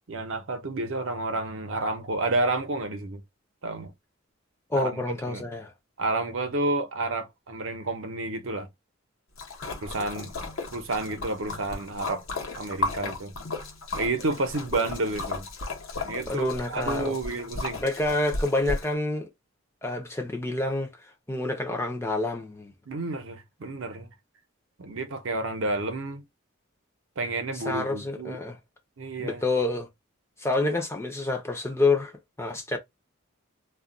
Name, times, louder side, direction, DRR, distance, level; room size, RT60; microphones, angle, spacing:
voice 1, 0.1-3.2 3.6-3.9 4.7-5.4 6.0-8.7 9.8-10.4 10.7-12.2 12.6-13.3 14.0-15.5 16.0-17.8 22.9-24.1 24.8-26.2 27.2-28.4 29.0-29.4, right 2 dB, 65° right, 0.7 m, -30 dB
voice 2, 4.7-5.7 16.3-17.2 17.8-19.3 19.8-22.7 27.5-28.6 29.2-29.9 30.4-32.1 32.4-32.8, left 2 dB, 10° left, 0.5 m, -28 dB
Splash splatter, 9.4-18.9, left 3 dB, 70° left, 0.8 m, -34 dB
2.3 x 2.2 x 3.7 m
head